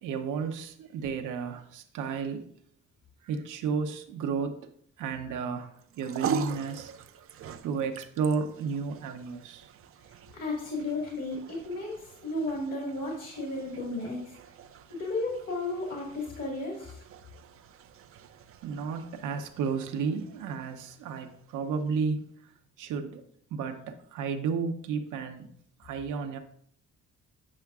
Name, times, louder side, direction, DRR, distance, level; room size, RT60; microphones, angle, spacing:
voice 1, 0.0-2.5 3.2-4.7 5.0-7.2 7.6-9.7 18.6-22.2 22.8-23.2 23.5-25.5 25.8-26.4, right 5 dB, 85° right, 0.8 m, -32 dB
sound 1, 5.8-22.3, right 6 dB, 50° right, 0.4 m, -43 dB
voice 2, 10.3-14.4 14.9-17.0, left 2 dB, 55° left, 1.7 m, -34 dB
8.6 x 5.6 x 2.4 m
cardioid pair, 90°, 30 cm